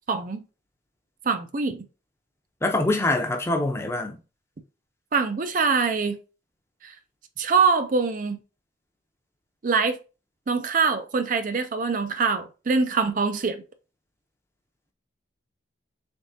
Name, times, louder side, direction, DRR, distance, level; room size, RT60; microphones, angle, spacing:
voice 1, 0.1-0.4 1.3-1.8 5.1-6.2 6.8-6.9 7.4-8.4 9.6-10.0 10.5-13.6, right 5 dB, 40° right, 0.4 m, -24 dB
voice 2, 2.6-4.2, left 2 dB, 15° left, 0.6 m, -24 dB
4.0 x 3.5 x 2.7 m
head